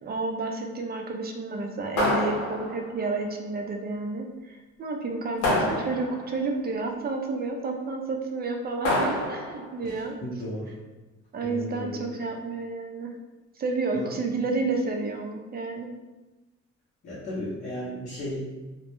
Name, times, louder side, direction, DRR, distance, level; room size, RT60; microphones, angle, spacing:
voice 1, 0.0-10.2 11.3-13.1 13.6-15.9, right 3 dB, 30° right, 3 dB, 0.4 m, -30 dB
sound 1, 2.0-3.0 5.4-6.4 8.8-9.7, left 1 dB, 75° left, 0.7 m, -27 dB
voice 2, 9.8-10.8 11.4-12.0 13.9-14.1 17.0-18.4, left 1 dB, 40° left, -8 dB, 0.7 m, -35 dB
2.2 x 2.1 x 2.9 m, 1.1 s
cardioid pair, 90°, 30 cm